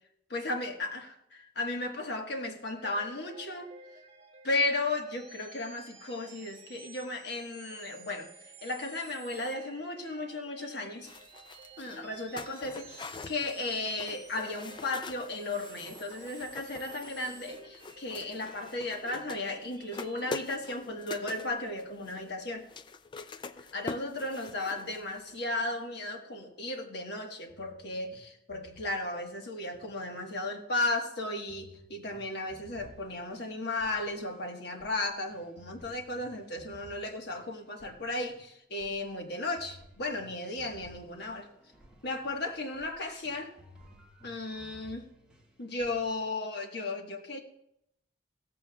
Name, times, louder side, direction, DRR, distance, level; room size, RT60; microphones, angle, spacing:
voice 1, 0.3-3.7 4.4-8.3 8.6-11.1 11.8-22.7 23.6-41.5 42.0-43.5 44.2-45.1 45.6-47.4, left 2 dB, 55° left, 3 dB, 1.3 m, -35 dB
sound 1, 2.6-20.5, right 5 dB, 30° right, 1.3 m, -53 dB
sound 2, 11.1-25.4 25.6-25.7, left 3 dB, 25° left, 0.3 m, -45 dB
sound 3, 27.5-30.6 31.5-46.2, equal, 5° right, 1.7 m, -57 dB
16.0 x 14.5 x 2.3 m, 0.78 s
head